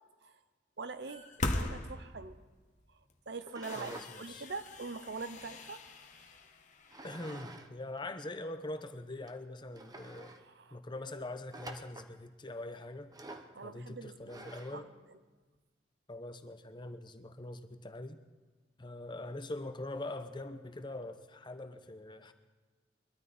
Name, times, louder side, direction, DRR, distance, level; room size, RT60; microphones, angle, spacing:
voice 1, 0.8-1.3 1.5-2.4 3.3-5.8 10.4-10.8 13.5-14.5 14.7-14.9, right 4 dB, 65° right, 11 dB, 0.8 m, -43 dB
sound 1, 1.0-2.5 3.0-3.1 3.6-7.4, left 2 dB, 45° left, 1.2 m, -40 dB
sound 2, 3.4-4.1 4.5-5.9 6.9-7.7 8.0-8.1 8.8-8.9 9.3-9.4 9.7-10.4 11.5-12.1 13.1-13.5 14.3-14.9, right 2 dB, 20° right, 0.9 m, -49 dB
voice 2, 3.8-4.5 7.0-10.3 10.7-13.1 13.6-14.9 16.1-18.2 18.8-22.3, left 2 dB, 25° left, 8 dB, 0.9 m, -43 dB
22.5 x 13.0 x 4.2 m, 1.3 s
head